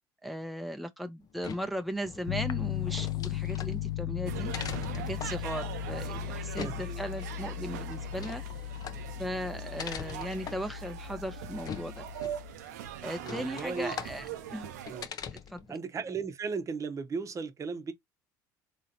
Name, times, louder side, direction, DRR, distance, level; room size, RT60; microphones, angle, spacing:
voice 1, 0.2-4.5 4.9-8.4 9.2-12.0 13.0-14.3 14.5-14.7 15.3-15.8, equal, ahead, 0.7 m, -37 dB
sound 1, 1.2-15.7, left 7 dB, 45° left, 0.7 m, -44 dB
Piano, 2.3-12.5, left 12 dB, 75° left, 0.4 m, -37 dB
sound 2, 4.3-15.1, right 10 dB, 90° right, 0.7 m, -42 dB
voice 2, 6.5-7.0 13.2-13.9 14.9-15.1 15.7-17.9, right 5 dB, 35° right, 0.9 m, -36 dB
3.8 x 3.0 x 2.7 m
hypercardioid pair, 75°, 9 cm